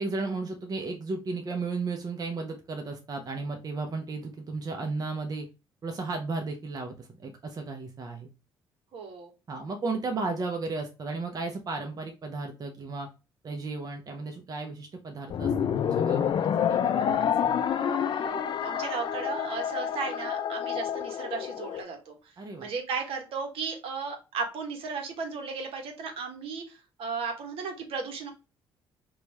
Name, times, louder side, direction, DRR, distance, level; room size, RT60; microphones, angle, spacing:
voice 1, 0.0-5.5 5.8-8.3 9.5-13.1 13.4-17.7 22.4-22.7, right 3 dB, 40° right, 4 dB, 0.7 m, -34 dB
voice 2, 8.9-9.3 18.1-22.3 22.6-28.3, right 5 dB, 65° right, 4 dB, 1.0 m, -35 dB
sound 1, 15.3-21.8, left 8 dB, 50° left, 0.4 m, -28 dB
3.0 x 2.4 x 4.1 m, 0.29 s
supercardioid pair, 65°, 10 cm